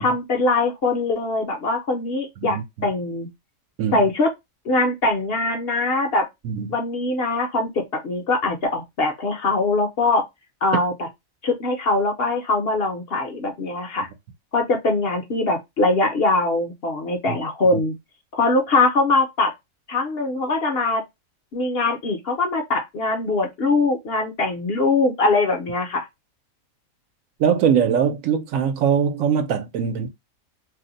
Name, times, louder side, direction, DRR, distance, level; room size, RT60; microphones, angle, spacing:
voice 1, 0.0-3.3 3.9-4.3 4.7-6.3 6.7-7.7 8.0-10.2 10.6-10.9 11.4-14.1 14.5-17.9 18.3-19.5 19.9-21.0 21.5-26.0, left 2 dB, 55° left, 0.8 m, -22 dB
voice 2, 27.4-30.1, right 7 dB, 75° right, 1.0 m, -21 dB
2.7 x 2.1 x 3.7 m
omnidirectional pair, 1.5 m